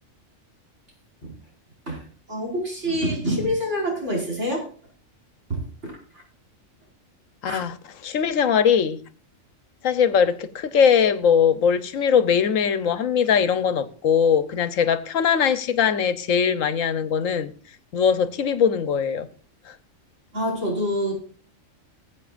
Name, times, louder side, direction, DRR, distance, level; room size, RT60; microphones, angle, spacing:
voice 1, 1.9-4.7 5.5-6.2 7.4-7.6 20.3-21.1, equal, 60° right, 5.4 m, -27 dB
voice 2, 7.4-7.7 8.0-9.0 9.8-17.5 17.9-19.3, left 7 dB, 80° left, 1.2 m, -21 dB
20.5 x 8.3 x 2.5 m
omnidirectional pair, 1.3 m